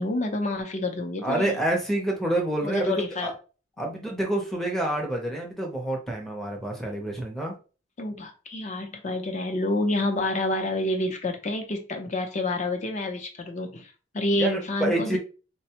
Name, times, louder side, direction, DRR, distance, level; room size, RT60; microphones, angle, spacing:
voice 1, 0.0-1.6 2.6-3.3 8.0-15.2, left 2 dB, 35° left, 4 dB, 0.6 m, -28 dB
voice 2, 1.2-3.3 3.8-7.6 14.4-15.2, right 1 dB, ahead, 0 dB, 0.6 m, -28 dB
4.1 x 2.2 x 2.9 m, 0.34 s
head